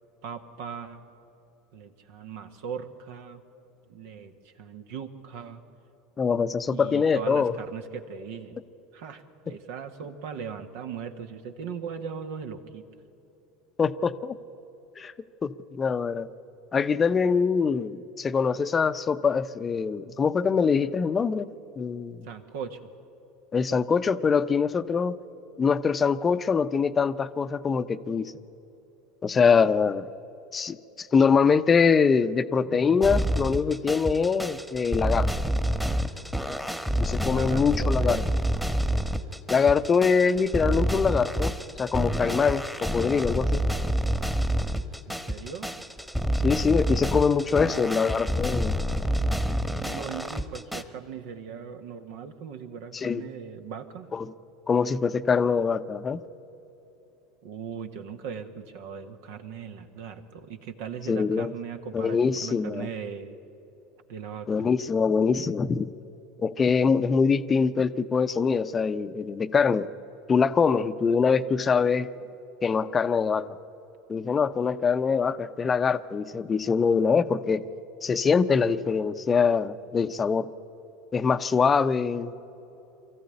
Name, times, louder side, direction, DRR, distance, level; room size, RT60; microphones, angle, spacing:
voice 1, 0.2-1.0 1.7-3.4 3.9-5.6 6.7-8.6 8.9-12.8 22.2-22.8 37.2-38.2 45.1-45.7 47.6-48.2 49.8-54.1 57.4-63.4 64.1-64.7, right 7 dB, 65° right, 7 dB, 1.6 m, -39 dB
voice 2, 6.2-7.5 13.8-14.4 15.0-15.1 15.4-16.3 16.7-21.5 21.8-22.2 23.5-25.2 25.6-28.3 29.2-30.1 30.5-35.3 36.9-38.2 39.5-41.5 41.8-43.7 46.4-48.7 52.9-53.2 54.1-54.3 54.7-56.2 61.1-61.5 61.9-62.9 64.5-65.9 66.4-69.9 70.3-72.1 72.6-73.5 74.1-77.6 78.0-80.5 81.1-82.3, left 5 dB, 25° left, 12 dB, 0.8 m, -24 dB
sound 1, 33.0-50.8, equal, 5° right, 1.4 m, -28 dB
23.5 x 14.5 x 9.8 m, 3.0 s
hypercardioid pair, 75°, 0 cm